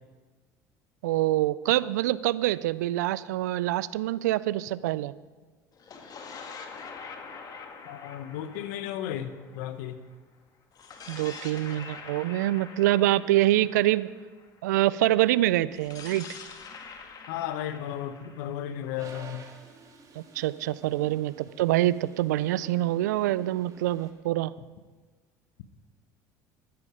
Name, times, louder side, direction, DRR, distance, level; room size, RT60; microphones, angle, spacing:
voice 1, 1.0-5.1 11.1-14.1 14.6-16.3 20.2-24.5, right 15 dB, 85° right, 18 dB, 0.4 m, -25 dB
sound 1, 5.7-10.1 10.7-14.7 15.7-19.5, left 5 dB, 45° left, 1.8 m, -45 dB
voice 2, 7.9-10.0 17.3-19.5, left 10 dB, 75° left, 11 dB, 0.9 m, -34 dB
Toilet flush, 18.9-24.1, right 4 dB, 40° right, 1.9 m, -51 dB
12.0 x 10.5 x 5.0 m, 1.3 s
hypercardioid pair, 75°, 9 cm